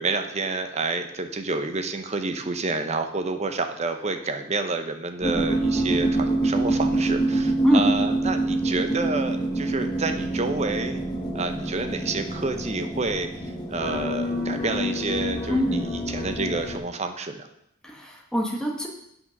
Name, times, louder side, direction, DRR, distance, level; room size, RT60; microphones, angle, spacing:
voice 1, 0.0-11.0 11.3-17.5, right 3 dB, 35° right, 7 dB, 0.8 m, -29 dB
sound 1, 5.2-16.8, right 2 dB, 20° left, 1.3 m, -26 dB
voice 2, 15.5-15.8 17.8-18.9, equal, 5° left, -1 dB, 1.5 m, -24 dB
8.0 x 5.9 x 5.9 m, 0.76 s
head